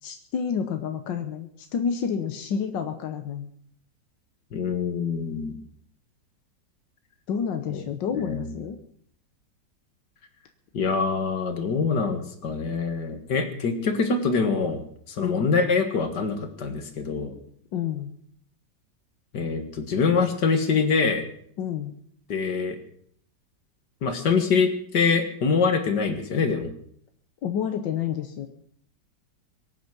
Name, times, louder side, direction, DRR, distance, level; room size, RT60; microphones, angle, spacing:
voice 1, 0.0-3.5 7.3-8.8 15.2-15.5 17.7-18.1 21.6-22.0 27.4-28.5, left 7 dB, 90° left, 7 dB, 1.7 m, -29 dB
voice 2, 4.5-5.6 7.7-7.8 8.1-8.5 10.7-14.8 15.1-17.3 19.3-21.2 22.3-22.8 24.0-26.7, left 5 dB, 70° left, 7 dB, 2.4 m, -24 dB
23.0 x 9.4 x 6.1 m, 0.64 s
omnidirectional pair, 1.9 m